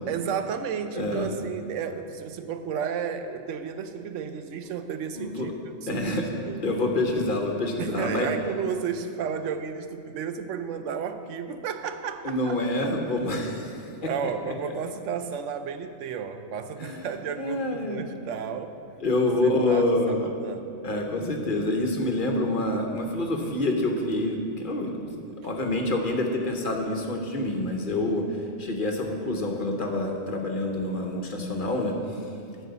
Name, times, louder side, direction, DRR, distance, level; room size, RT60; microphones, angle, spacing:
voice 1, 0.1-6.6 7.8-12.6 13.4-13.6 14.0-18.8 19.4-20.8 25.4-25.7, right 7 dB, 80° right, 9 dB, 0.9 m, -33 dB
voice 2, 0.9-1.3 5.1-5.5 5.9-6.3 6.6-8.3 12.2-14.3 16.8-18.0 19.0-20.3 20.8-31.9, left 2 dB, 45° left, 2 dB, 1.0 m, -27 dB
10.5 x 4.7 x 8.0 m, 2.6 s
omnidirectional pair, 1.3 m